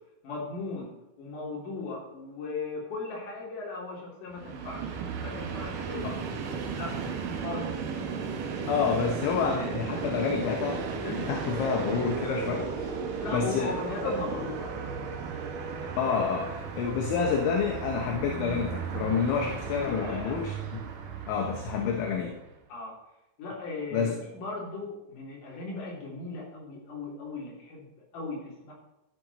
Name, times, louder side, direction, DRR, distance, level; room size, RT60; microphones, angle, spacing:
voice 1, 0.2-7.0 7.4-7.7 13.2-14.8 19.8-20.4 22.7-23.0 23.4-28.7, left 3 dB, 45° left, -3 dB, 4.1 m, -38 dB
Train, 4.3-22.4, right 5 dB, 80° right, 1.9 m, -35 dB
voice 2, 8.7-13.0 13.3-13.8 16.0-20.8 21.3-22.4 23.9-24.1, left 6 dB, 75° left, 3 dB, 3.2 m, -29 dB
12.5 x 9.1 x 4.1 m, 0.89 s
omnidirectional pair, 5.8 m